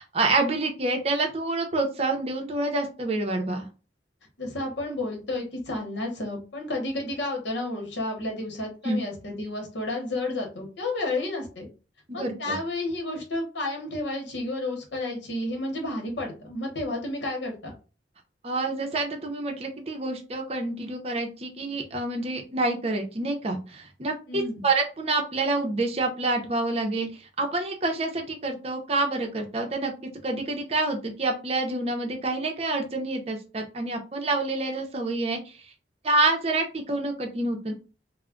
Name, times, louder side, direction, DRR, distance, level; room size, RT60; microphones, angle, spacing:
voice 1, 0.0-3.7 8.8-9.0 12.1-12.6 18.4-29.9 30.2-35.5 36.0-37.7, right 2 dB, 35° right, 4 dB, 0.6 m, -27 dB
voice 2, 4.4-11.7 12.1-17.7 24.3-24.7, left 2 dB, 80° left, 1 dB, 0.9 m, -31 dB
2.2 x 2.0 x 3.6 m, 0.33 s
head